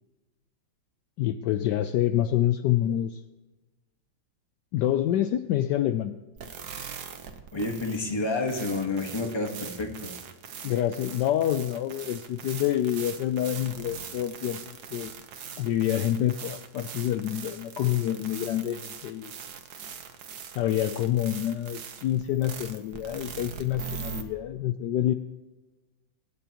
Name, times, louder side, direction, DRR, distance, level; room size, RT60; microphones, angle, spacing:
voice 1, 1.2-3.2 4.7-6.2 10.6-15.1 15.6-19.3 20.5-25.1, left 12 dB, 75° left, 9 dB, 1.1 m, -27 dB
sound 1, 6.4-24.2, right 7 dB, 60° right, 1.4 m, -41 dB
voice 2, 7.5-10.1, left 2 dB, 15° left, 3 dB, 1.4 m, -29 dB
24.0 x 10.0 x 3.0 m, 1.2 s
omnidirectional pair, 2.1 m